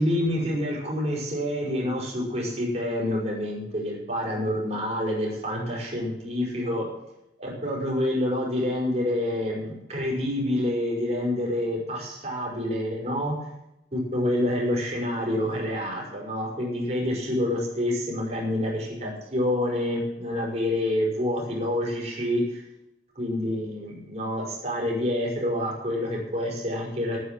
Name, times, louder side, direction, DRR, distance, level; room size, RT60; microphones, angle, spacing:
voice 1, 0.0-6.9 7.4-13.4 13.9-22.6 23.2-27.2, left 1 dB, 35° right, -3 dB, 5.4 m, -27 dB
10.5 x 9.4 x 7.6 m, 0.87 s
head